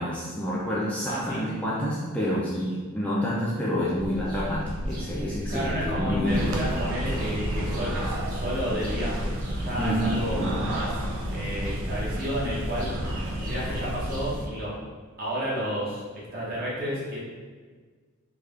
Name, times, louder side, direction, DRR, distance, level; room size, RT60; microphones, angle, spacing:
voice 1, 0.0-6.6 9.8-10.6, equal, 5° left, -7 dB, 0.4 m, -28 dB
voice 2, 1.1-1.4 5.5-9.3 9.6-10.9 11.3-12.9 13.4-14.8 15.2-17.2, equal, 45° right, -7 dB, 1.1 m, -31 dB
sound 1, 4.0-14.4, equal, 80° right, 1.2 m, -35 dB
sound 2, 6.3-14.5, right 1 dB, 60° right, 0.5 m, -32 dB
3.5 x 2.3 x 3.2 m, 1.5 s
head